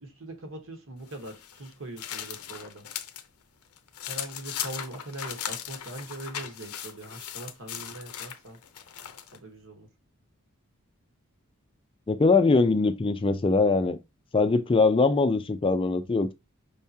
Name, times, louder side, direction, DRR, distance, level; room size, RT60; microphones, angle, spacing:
voice 1, 0.0-2.9 4.1-8.6 9.3-9.9, right 2 dB, 60° right, 1.2 m, -41 dB
sound 1, 1.1-3.3 3.6-9.4, left 10 dB, 90° left, 0.7 m, -38 dB
voice 2, 12.1-14.0 14.3-16.3, left 3 dB, 25° left, 0.4 m, -22 dB
5.4 x 3.5 x 2.7 m
head